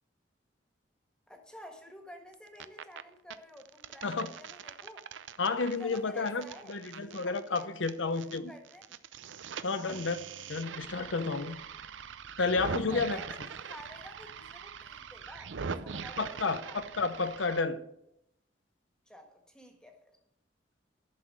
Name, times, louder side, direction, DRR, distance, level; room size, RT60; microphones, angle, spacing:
voice 1, 1.3-5.0 5.8-7.7 8.2-8.9 9.7-10.0 12.6-16.8 19.1-20.0, left 1 dB, 5° left, 1.6 m, -51 dB
sound 1, 2.3-3.0 3.3-8.4 8.6-17.6, right 6 dB, 85° right, 0.6 m, -42 dB
voice 2, 5.4-8.5 9.6-11.6 12.4-13.2 16.2-17.8, left 4 dB, 90° left, 0.8 m, -31 dB
11.5 x 6.4 x 7.4 m
head